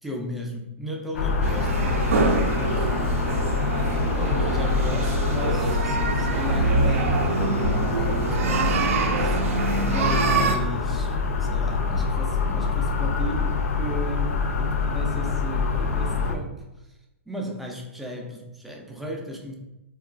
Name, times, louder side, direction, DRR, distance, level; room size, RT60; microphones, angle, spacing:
voice 1, 0.0-3.2 4.0-9.4 9.8-16.9 17.3-19.5, equal, ahead, -1 dB, 0.3 m, -36 dB
sound 1, 1.1-16.4, left 4 dB, 80° left, 0.4 m, -25 dB
sound 2, 1.4-10.6, right 3 dB, 75° right, 0.5 m, -25 dB
3.6 x 2.2 x 2.4 m, 0.95 s
hypercardioid pair, 155°, 8 cm